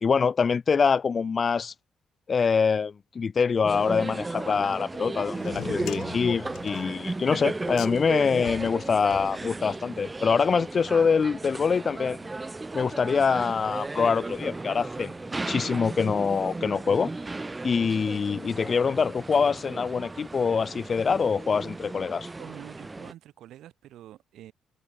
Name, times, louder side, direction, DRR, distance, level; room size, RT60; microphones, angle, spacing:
voice 1, 0.0-1.7 2.3-12.2 12.7-15.1 15.5-17.1 17.6-22.3, left 5 dB, 40° left, 0.3 m, -24 dB
sound 1, 3.6-23.1, right 2 dB, 20° right, 2.9 m, -35 dB
sound 2, 4.8-21.4, equal, 5° right, 6.9 m, -55 dB
sound 3, 5.4-9.9, left 13 dB, 80° left, 3.6 m, -42 dB
voice 2, 22.4-24.5, right 13 dB, 80° right, 2.9 m, -46 dB
cardioid pair, 90°, 0 cm